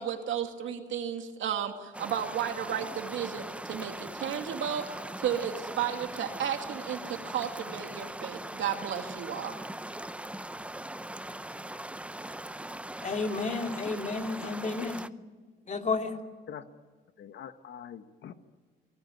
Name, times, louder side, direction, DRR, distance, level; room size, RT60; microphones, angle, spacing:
voice 1, 0.0-9.6, right 9 dB, 75° right, 5 dB, 2.7 m, -33 dB
sound 1, 1.9-15.1, right 1 dB, 5° right, 0.7 m, -40 dB
voice 2, 13.0-15.0 15.7-16.2, left 4 dB, 35° left, 4 dB, 2.9 m, -31 dB
voice 3, 14.4-14.9 16.5-16.6 17.2-18.3, left 9 dB, 65° left, 9 dB, 1.5 m, -44 dB
29.0 x 19.0 x 9.5 m, 1.6 s
cardioid pair, 90°, 20 cm